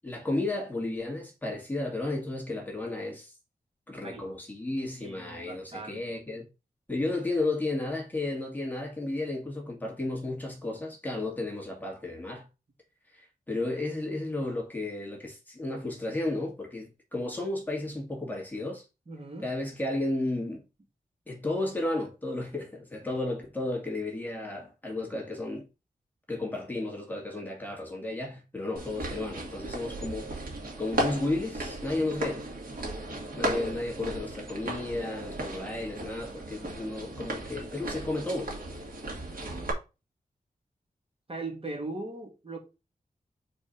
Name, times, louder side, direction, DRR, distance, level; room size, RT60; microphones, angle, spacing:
voice 1, 0.0-3.3 3.9-6.5 6.9-12.5 13.1-18.8 19.4-20.6 21.3-25.7 26.3-30.5 30.8-32.4 33.4-38.5, left 2 dB, 10° left, 2.1 m, -33 dB
voice 2, 5.0-6.0 19.1-19.5 41.3-42.6, right 2 dB, 40° right, 2.0 m, -39 dB
sound 1, 28.8-39.7, right 1 dB, 70° right, 2.2 m, -36 dB
4.7 x 4.4 x 5.6 m
wide cardioid pair, 125°, 15 cm